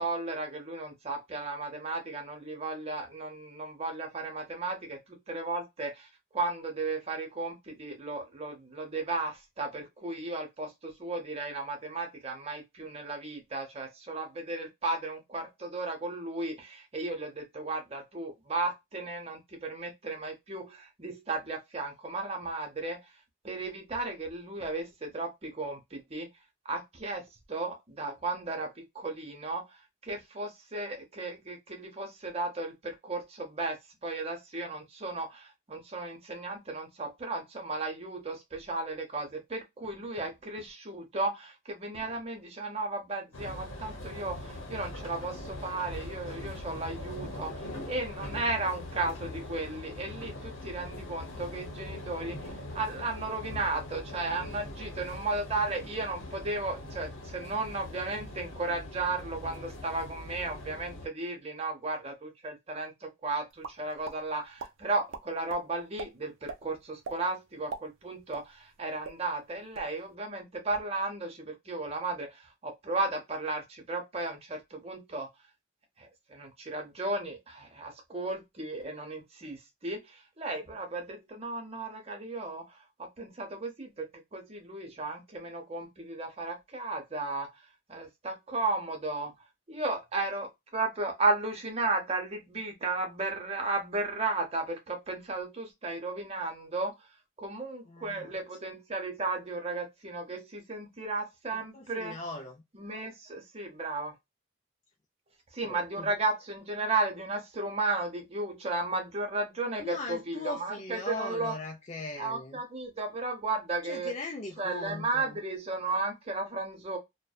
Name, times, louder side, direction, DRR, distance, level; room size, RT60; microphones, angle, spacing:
voice 1, 0.0-23.0 23.4-26.3 26.6-75.3 76.0-89.3 89.7-97.1 97.4-102.1 102.7-104.1 105.5-111.6 112.2-114.1 114.6-117.0, right 2 dB, 30° right, 0.7 m, -34 dB
sound 1, 43.3-61.1, left 1 dB, 85° left, 0.8 m, -42 dB
sound 2, 63.6-64.2 64.6-64.7 65.1-65.6 66.0-66.1 66.5-66.6 67.0-67.2 67.5-68.8 69.0-69.2 69.6-69.9, right 5 dB, 80° right, 0.4 m, -39 dB
voice 2, 97.9-98.3 101.7-102.6 105.6-106.1 109.8-112.6 113.8-115.4, left 2 dB, 35° left, 0.4 m, -39 dB
2.6 x 2.1 x 2.3 m
head